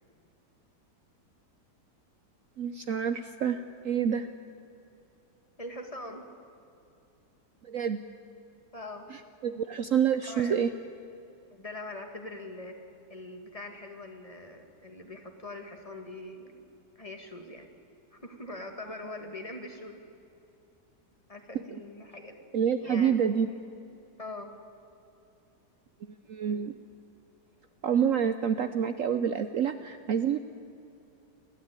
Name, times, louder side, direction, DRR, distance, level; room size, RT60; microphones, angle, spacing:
voice 1, 2.6-4.3 7.7-8.0 9.4-10.7 22.5-23.5 26.3-26.7 27.8-30.4, right 8 dB, 60° right, 10 dB, 0.9 m, -27 dB
voice 2, 5.6-6.3 8.7-9.2 10.2-10.5 11.5-16.7 17.0-17.7 18.1-20.0 21.3-22.4 22.8-23.1 24.2-24.6 26.4-26.7, left 2 dB, 20° left, 4 dB, 1.8 m, -43 dB
28.5 x 12.5 x 9.0 m, 2.6 s
omnidirectional pair, 1.9 m